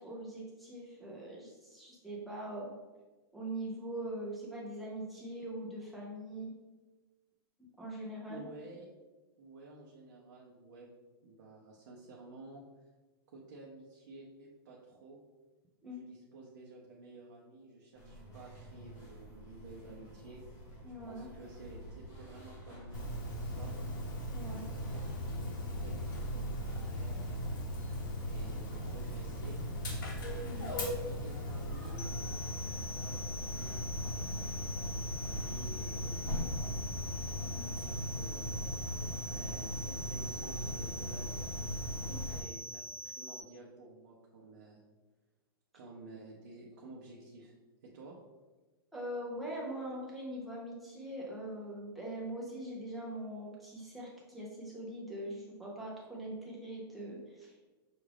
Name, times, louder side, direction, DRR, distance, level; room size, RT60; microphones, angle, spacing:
voice 1, 0.0-2.7 3.3-6.5 7.8-8.4 15.8-16.0 20.8-21.3 24.3-24.6 30.4-30.6 37.4-37.7 42.1-42.2 48.9-57.6, right 1 dB, ahead, -6 dB, 0.5 m, -42 dB
voice 2, 8.3-8.9 9.4-10.9 11.2-12.9 13.3-15.2 15.8-20.4 21.0-23.7 24.4-27.6 28.2-29.6 30.4-32.3 32.7-36.7 37.4-39.0 39.3-41.5 42.0-44.8 45.7-47.5 47.8-48.2, right 2 dB, 45° right, -3 dB, 0.6 m, -52 dB
sound 1, 18.0-37.4, right 1 dB, 20° left, 1.0 m, -48 dB
Dog, 22.9-42.4, equal, 50° left, 0.9 m, -38 dB
sound 2, 32.0-43.4, left 1 dB, 90° left, 0.5 m, -45 dB
5.9 x 2.4 x 3.3 m, 1.2 s
hypercardioid pair, 175°, 13 cm